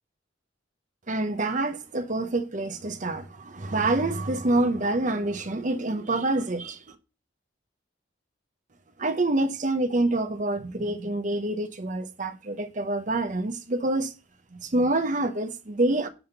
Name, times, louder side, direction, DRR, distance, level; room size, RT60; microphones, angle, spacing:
voice 1, 1.1-6.8 9.0-14.1 14.5-16.1, right 2 dB, 40° right, 0.8 m, -26 dB
9.9 x 3.6 x 6.9 m
head